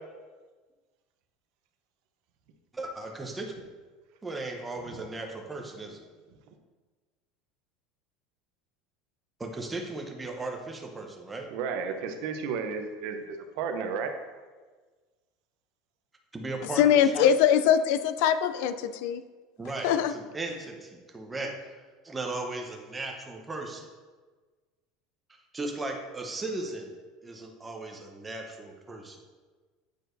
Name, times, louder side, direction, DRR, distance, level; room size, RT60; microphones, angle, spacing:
voice 1, 2.7-3.5 4.2-6.1 9.4-11.5 16.3-17.3 19.6-21.5 22.0-23.9 25.5-27.0 27.2-29.2, right 2 dB, 15° right, 2 dB, 0.8 m, -36 dB
voice 2, 11.5-14.1, right 5 dB, 70° right, 5 dB, 0.7 m, -33 dB
voice 3, 16.8-19.2 19.8-20.1, left 9 dB, 75° left, 11 dB, 0.3 m, -22 dB
8.0 x 4.6 x 2.6 m, 1.4 s
supercardioid pair, 130°, 0 cm